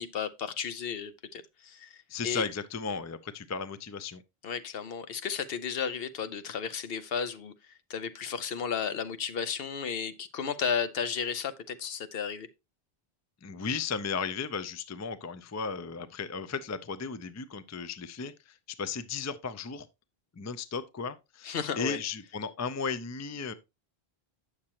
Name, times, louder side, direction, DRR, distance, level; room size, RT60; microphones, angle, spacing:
voice 1, 0.0-1.9 2.2-2.4 4.4-7.5 7.9-12.5 21.4-22.0, left 7 dB, 65° left, 0.9 m, -33 dB
voice 2, 2.1-4.2 13.4-19.9 20.4-23.5, left 5 dB, 30° left, 0.3 m, -35 dB
8.6 x 6.6 x 2.9 m
omnidirectional pair, 1.1 m